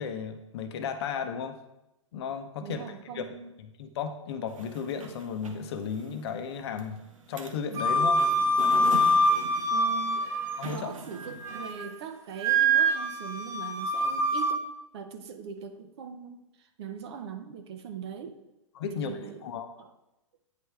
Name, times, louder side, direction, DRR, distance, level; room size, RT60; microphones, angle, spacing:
voice 1, 0.0-1.6 2.1-2.9 3.1-3.3 3.6-7.0 7.3-8.2 10.6-10.9 18.7-19.7, left 6 dB, 55° left, 7 dB, 0.7 m, -34 dB
voice 2, 2.6-3.5 9.7-10.3 10.7-14.6 14.9-18.4 18.9-19.5 19.8-19.9, right 7 dB, 55° right, 7 dB, 0.8 m, -41 dB
sound 1, 4.5-11.7, right 2 dB, 85° right, 0.8 m, -42 dB
Wind instrument woodwind instrument, 7.7-10.8 11.2-11.9 12.4-14.6, right 1 dB, 15° right, 0.5 m, -25 dB
9.2 x 3.3 x 3.2 m, 0.90 s
hypercardioid pair, 120°, 17 cm